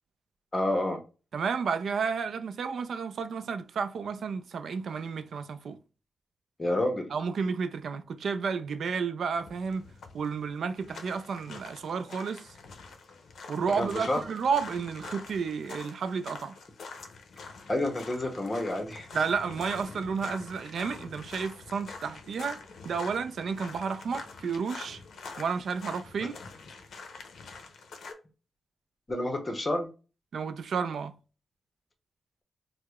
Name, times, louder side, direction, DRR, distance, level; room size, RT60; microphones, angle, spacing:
voice 1, 0.5-1.0 6.6-7.1 13.7-14.2 17.7-19.1 29.1-29.9, left 1 dB, 20° left, 0.7 m, -29 dB
voice 2, 1.3-5.8 7.1-9.8 10.1-12.5 13.5-16.6 19.1-22.6 22.8-25.0 25.4-26.4 30.3-31.2, right 5 dB, 65° right, 0.3 m, -31 dB
sound 1, 9.4-28.1, left 4 dB, 75° left, 0.5 m, -46 dB
4.6 x 2.0 x 2.3 m
wide cardioid pair, 150°, 0 cm